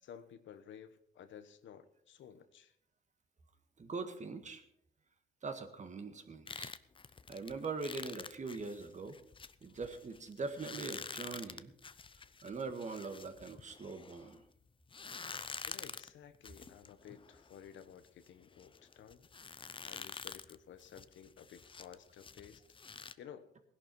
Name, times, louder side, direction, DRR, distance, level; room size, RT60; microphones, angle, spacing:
voice 1, 0.0-2.7 15.7-22.6 23.2-23.5, left 8 dB, 70° left, 10 dB, 1.2 m, -54 dB
voice 2, 3.8-4.6 5.4-6.7 7.3-9.2 9.6-11.7 12.4-14.4, right 4 dB, 35° right, 7 dB, 1.8 m, -42 dB
sound 1, 6.5-14.4 14.9-23.1, left 5 dB, 25° left, 0.6 m, -48 dB
16.5 x 11.0 x 4.7 m, 0.71 s
cardioid pair, 90°, 20 cm